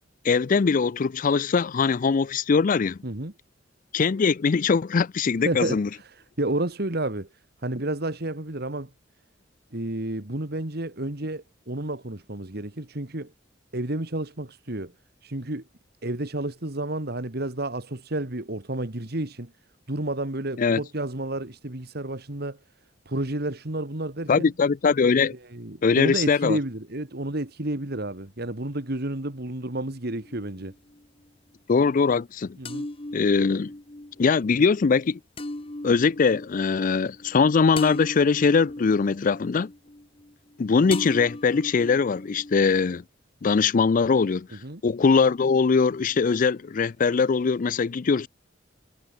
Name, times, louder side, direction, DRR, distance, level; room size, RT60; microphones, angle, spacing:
voice 1, 0.2-3.0 3.9-5.9 20.6-20.8 24.3-25.3 25.8-26.6 31.7-32.6 33.1-33.7 34.2-35.2 35.8-39.7 40.6-43.0 43.4-44.5 44.8-48.3, left 5 dB, 45° left, 0.4 m, -21 dB
voice 2, 3.0-3.3 5.4-7.3 7.6-8.9 9.7-13.3 13.7-14.9 15.2-15.6 16.0-19.5 19.9-22.6 23.1-24.5 25.3-30.7 32.6-32.9 44.6-44.8, right 1 dB, 60° right, 2.2 m, -31 dB
sound 1, 30.1-31.0 32.7-40.6 40.9-43.0, left 2 dB, 30° left, 1.3 m, -38 dB
head